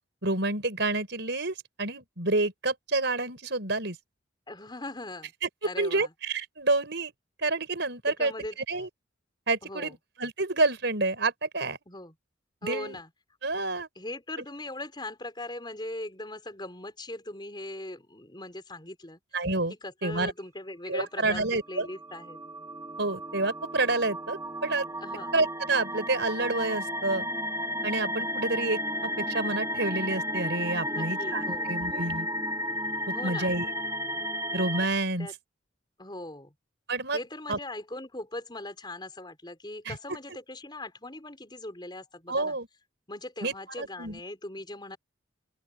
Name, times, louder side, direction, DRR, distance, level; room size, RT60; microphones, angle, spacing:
voice 1, 0.2-4.0 5.4-5.5 5.8-7.1 7.4-8.3 8.7-8.9 9.5-11.8 12.6-13.0 13.4-13.9 19.3-19.7 20.0-20.3 20.9-21.9 23.0-24.9 25.3-27.3 27.8-32.3 33.2-33.7 34.5-35.3 36.9-37.2 37.5-37.6 39.8-40.0 42.3-42.7 43.4-44.2, right 2 dB, 60° right, 6.2 m, -29 dB
voice 2, 4.5-5.3 5.6-6.1 8.1-8.6 9.6-9.9 11.9-12.1 12.6-13.1 14.0-19.2 19.7-22.4 25.0-25.3 30.9-31.8 33.1-33.5 35.2-35.3 36.0-36.5 37.1-42.6 43.1-45.0, left 2 dB, 25° left, 5.7 m, -40 dB
sound 1, 21.6-34.9, equal, 15° right, 2.5 m, -33 dB
open air
head